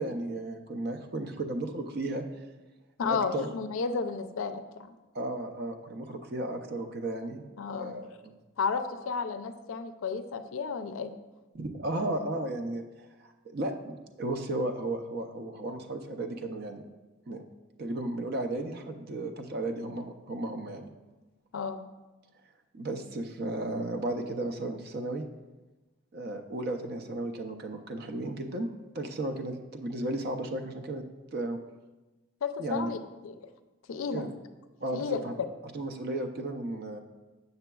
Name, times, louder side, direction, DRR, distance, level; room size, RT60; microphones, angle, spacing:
voice 1, 0.0-2.2 3.0-3.5 5.1-8.3 11.5-16.8 17.3-17.4 17.8-20.9 22.7-25.2 26.1-28.7 28.9-31.0 31.3-31.6 32.6-32.9 34.1-34.3 34.8-35.3 35.7-37.0, right 2 dB, 45° right, 5 dB, 0.5 m, -34 dB
voice 2, 3.0-4.9 7.6-8.0 8.6-11.1 21.5-21.8 32.4-33.0 33.2-33.3 33.9-34.2 34.9-35.2, left 5 dB, 75° left, 9 dB, 0.4 m, -32 dB
6.8 x 6.6 x 2.3 m, 1.1 s
head